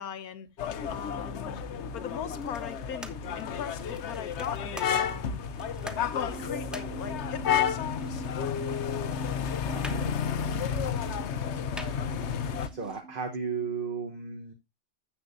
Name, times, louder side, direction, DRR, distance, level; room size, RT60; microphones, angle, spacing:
voice 1, 0.0-1.6 1.9-5.4 6.1-8.2, left 8 dB, 85° left, 1.5 m, -40 dB
sound 1, 0.6-12.7, left 7 dB, 60° left, 0.9 m, -31 dB
sound 2, 2.2-13.0, equal, ahead, 1.0 m, -49 dB
sound 3, 6.3-13.7, right 5 dB, 75° right, 2.7 m, -44 dB
voice 2, 9.7-10.2 12.7-14.5, right 5 dB, 40° right, 1.2 m, -35 dB
13.0 x 8.1 x 2.6 m
omnidirectional pair, 1.5 m